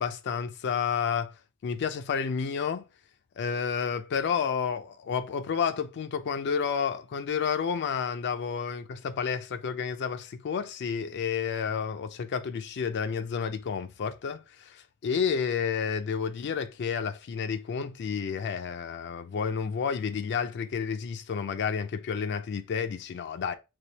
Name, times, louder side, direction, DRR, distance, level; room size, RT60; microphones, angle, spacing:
voice 1, 0.0-1.3 1.6-2.8 3.4-23.5, left 6 dB, 50° left, 0.4 m, -30 dB
3.3 x 3.3 x 2.7 m
head